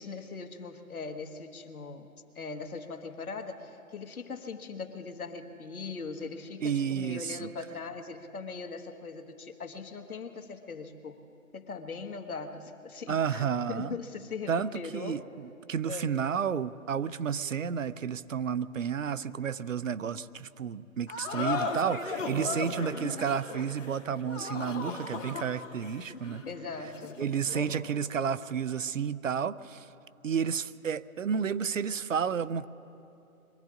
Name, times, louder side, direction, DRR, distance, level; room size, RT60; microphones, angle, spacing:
voice 1, 0.0-2.1 2.3-11.2 11.5-15.2 15.8-16.1 22.2-22.7 26.5-27.2, left 4 dB, 80° left, 6 dB, 1.6 m, -40 dB
voice 2, 6.6-7.5 13.1-13.9 14.5-26.4 27.2-29.9 30.2-32.7, right 7 dB, 65° right, 17 dB, 0.6 m, -31 dB
sound 1, 21.1-27.8, left 3 dB, 60° left, 2.5 m, -36 dB
23.5 x 16.0 x 3.8 m, 2.7 s
hypercardioid pair, 175°, 42 cm